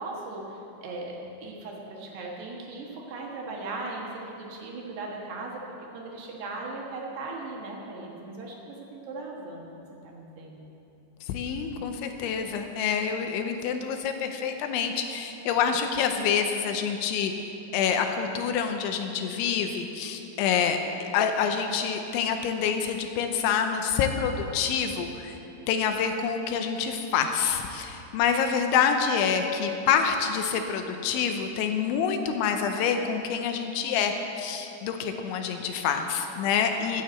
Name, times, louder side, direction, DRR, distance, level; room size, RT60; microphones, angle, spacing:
voice 1, 0.0-5.6 5.9-9.7 10.0-10.7, right 3 dB, 65° right, -1 dB, 3.2 m, -38 dB
voice 2, 11.2-17.3 17.7-25.4 25.7-37.0, left 7 dB, 80° left, 5 dB, 3.0 m, -27 dB
12.5 x 9.5 x 7.8 m, 3.0 s
omnidirectional pair, 5.6 m